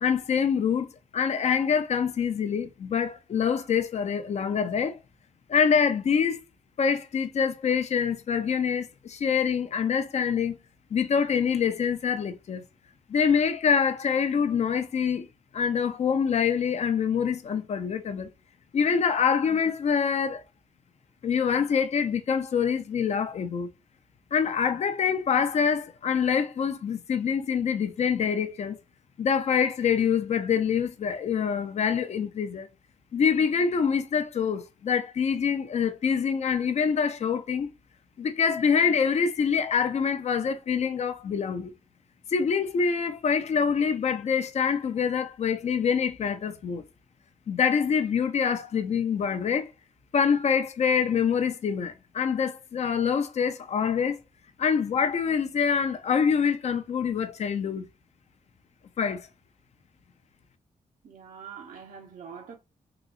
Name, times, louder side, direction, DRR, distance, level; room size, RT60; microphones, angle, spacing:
voice 1, 0.0-5.0 5.5-6.4 6.8-10.6 10.9-12.6 13.1-15.3 15.5-18.3 18.7-20.4 21.2-23.7 24.3-28.8 29.2-32.7 33.1-37.7 38.2-41.7 42.3-46.8 47.5-49.7 50.1-54.2 54.6-57.8 59.0-59.2, left 6 dB, 55° left, 0.6 m, -25 dB
voice 2, 61.0-62.6, right 7 dB, 70° right, 0.7 m, -44 dB
3.9 x 2.9 x 2.4 m
wide cardioid pair, 160°, 14 cm